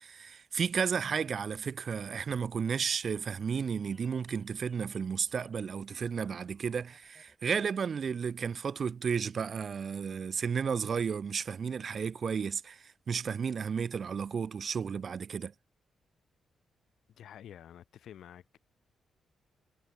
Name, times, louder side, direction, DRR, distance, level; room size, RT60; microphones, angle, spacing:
voice 1, 0.0-15.5, right 6 dB, 45° right, 0.5 m, -33 dB
sound 1, 2.0-7.4, left 1 dB, 5° left, 1.4 m, -63 dB
voice 2, 17.1-18.6, left 10 dB, 75° left, 2.0 m, -50 dB
cardioid pair, 135°, 0 cm